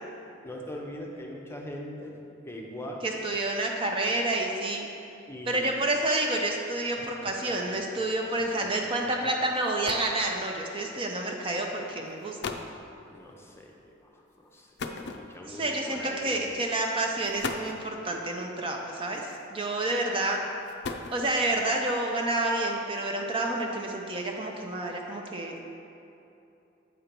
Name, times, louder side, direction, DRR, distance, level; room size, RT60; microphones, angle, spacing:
voice 1, 0.4-3.1 5.3-5.7 7.0-7.1 7.5-8.0 8.8-9.1 13.1-16.4 20.2-20.3, left 1 dB, 15° left, -1 dB, 0.7 m, -42 dB
voice 2, 3.0-4.9 5.5-12.4 15.4-20.4 21.1-25.7, right 2 dB, 25° right, 1 dB, 0.5 m, -29 dB
sound 1, 9.3-9.4 9.6-10.2 11.2-11.4 12.1-12.2 12.4-12.8 14.8-15.6 16.6-16.7 17.2-17.9 19.2-19.7 20.5-21.5, left 4 dB, 60° left, 0.4 m, -37 dB
7.9 x 4.4 x 5.2 m, 2.8 s
head